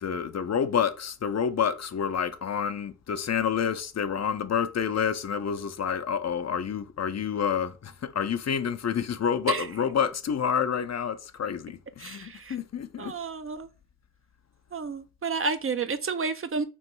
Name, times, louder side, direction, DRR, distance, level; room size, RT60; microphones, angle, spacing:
voice 1, 0.0-13.2, left 7 dB, 60° left, 0.5 m, -28 dB
voice 2, 12.0-12.6 13.0-13.7 14.7-16.6, right 4 dB, 45° right, 0.5 m, -31 dB
3.1 x 3.0 x 4.5 m
cardioid pair, 55°, 30 cm